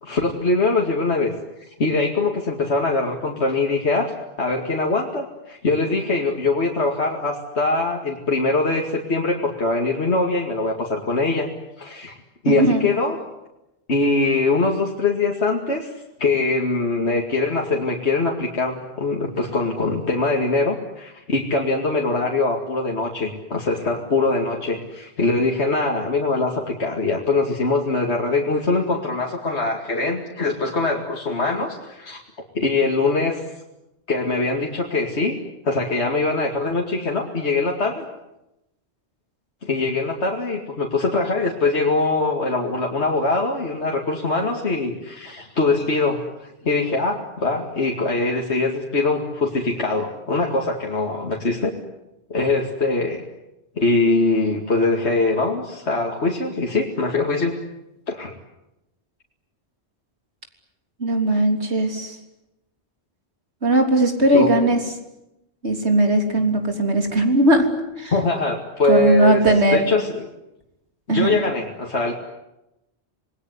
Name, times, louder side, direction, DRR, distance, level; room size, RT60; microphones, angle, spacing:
voice 1, 0.0-1.3 1.8-4.1 4.4-11.5 11.8-12.1 12.4-13.2 13.9-15.9 16.2-32.2 32.5-33.4 34.1-35.4 35.6-38.1 39.6-51.7 52.3-53.2 53.8-57.6 58.1-58.3 64.3-64.5 68.1-69.4 69.7-70.3 71.1-72.1, left 3 dB, 75° left, 0 dB, 2.6 m, -22 dB
voice 2, 12.5-12.9 61.0-62.2 63.6-64.8 65.6-67.7 68.0-68.1 68.9-69.9 71.1-71.4, right 1 dB, 75° right, 4 dB, 3.8 m, -18 dB
27.5 x 20.5 x 9.7 m, 0.91 s
omnidirectional pair, 1.1 m